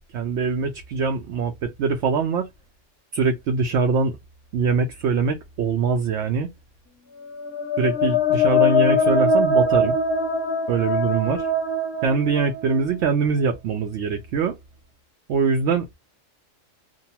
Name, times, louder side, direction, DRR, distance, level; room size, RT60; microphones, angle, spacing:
voice 1, 0.1-2.5 3.1-4.1 4.5-6.5 7.8-9.9 10.7-11.5 12.0-14.6 15.3-15.9, right 5 dB, 70° right, 0.8 m, -23 dB
sound 1, 7.3-13.1, left 2 dB, 10° left, 0.7 m, -22 dB
2.7 x 2.2 x 2.8 m
omnidirectional pair, 1.3 m